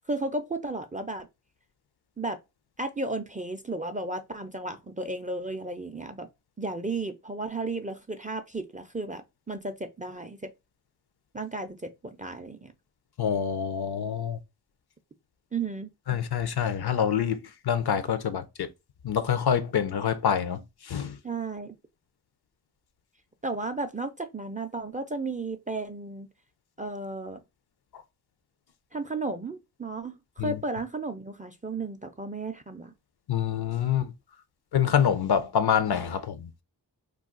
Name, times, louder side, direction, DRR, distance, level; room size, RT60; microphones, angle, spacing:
voice 1, 0.1-1.3 2.2-2.4 2.8-6.3 6.6-10.5 11.3-12.7 15.5-15.9 21.2-21.8 23.4-26.3 26.8-27.4 28.9-32.9, right 3 dB, 20° right, 0.3 m, -34 dB
voice 2, 13.2-14.4 16.1-18.7 19.0-21.2 30.4-30.6 33.3-34.1 34.7-36.5, left 8 dB, 60° left, 0.5 m, -26 dB
2.3 x 2.3 x 3.7 m
cardioid pair, 50°, 44 cm